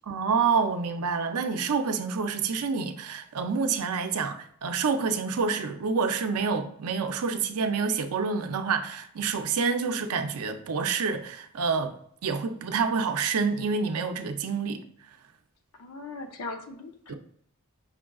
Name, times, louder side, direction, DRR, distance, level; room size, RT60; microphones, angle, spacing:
voice 1, 0.1-12.0 12.2-14.8 17.1-17.2, right 5 dB, 80° right, 0.5 m, -28 dB
voice 2, 15.8-17.1, left 3 dB, 85° left, 0.7 m, -39 dB
5.7 x 2.3 x 3.5 m
head